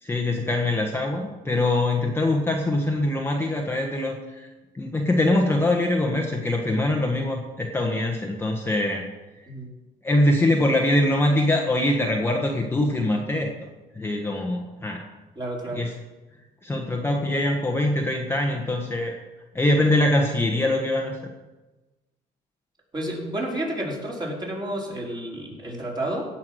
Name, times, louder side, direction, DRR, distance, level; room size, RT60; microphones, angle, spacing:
voice 1, 0.0-4.5 4.7-9.0 10.0-13.7 13.9-15.0 15.7-15.9 16.6-19.1 19.5-21.2, left 1 dB, 15° left, 1 dB, 1.4 m, -23 dB
voice 2, 15.4-15.8 22.9-26.2, right 1 dB, 25° right, -3 dB, 4.4 m, -30 dB
17.0 x 5.9 x 6.4 m, 1.1 s
cardioid pair, 110°, 17 cm